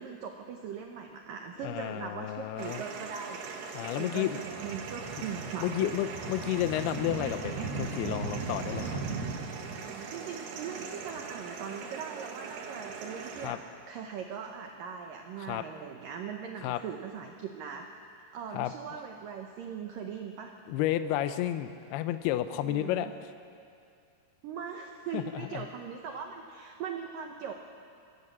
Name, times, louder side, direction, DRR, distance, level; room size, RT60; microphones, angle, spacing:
voice 1, 0.0-3.4 3.9-6.0 9.7-13.6 13.9-17.9 18.3-20.5 22.6-23.1 24.4-27.5, right 7 dB, 90° right, 3 dB, 1.9 m, -40 dB
voice 2, 1.6-2.8 3.7-4.4 5.6-9.0 13.4-13.6 15.4-15.6 16.6-16.8 18.5-18.7 20.7-23.1 25.1-25.6, left 13 dB, 85° left, 10 dB, 2.3 m, -31 dB
sound 1, 2.6-13.5, right 5 dB, 65° right, 3.3 m, -38 dB
24.5 x 15.5 x 7.4 m, 2.4 s
omnidirectional pair, 5.5 m